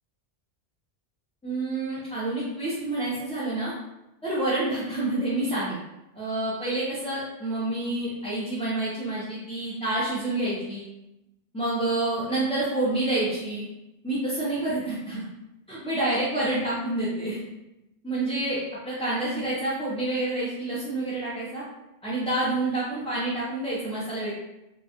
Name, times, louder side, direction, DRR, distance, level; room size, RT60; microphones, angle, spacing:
voice 1, 1.4-3.7 4.2-5.8 6.1-10.8 11.5-13.6 14.0-15.2 15.7-17.4 18.0-18.6 18.8-21.6 22.0-24.3, right 2 dB, 10° left, -10 dB, 0.4 m, -28 dB
3.2 x 2.3 x 2.7 m, 0.92 s
omnidirectional pair, 1.0 m